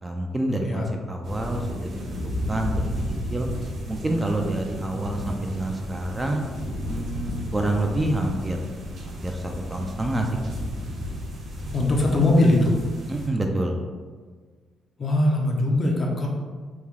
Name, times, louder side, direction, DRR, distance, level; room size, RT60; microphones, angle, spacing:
voice 1, 0.0-2.2 2.5-2.9 3.3-3.5 3.9-6.4 6.9-8.6 9.1-10.3 13.1-13.8, right 1 dB, 20° right, 2 dB, 0.4 m, -27 dB
sound 1, 1.2-13.3, equal, 60° right, 1.0 m, -33 dB
voice 2, 11.7-12.8 15.0-16.3, left 1 dB, 40° left, 0 dB, 0.7 m, -21 dB
3.6 x 2.3 x 3.2 m, 1.5 s
cardioid pair, 90°, 0 cm